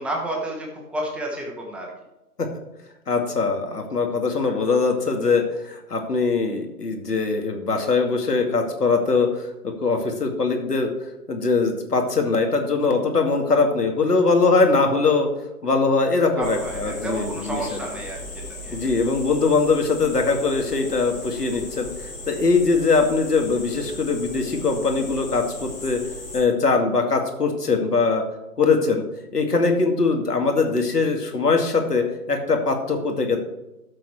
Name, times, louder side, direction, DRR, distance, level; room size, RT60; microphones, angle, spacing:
voice 1, 0.0-1.9 16.3-18.2 18.5-18.8, right 1 dB, ahead, -1 dB, 1.2 m, -30 dB
voice 2, 3.1-10.9 11.3-15.3 15.6-17.8 18.7-26.0 26.3-28.2 28.6-29.0 29.3-33.4, left 4 dB, 90° left, 3 dB, 2.4 m, -21 dB
sound 1, 16.4-26.4, left 2 dB, 15° left, 3.3 m, -37 dB
14.0 x 7.7 x 3.3 m, 0.99 s
hypercardioid pair, 140°, 46 cm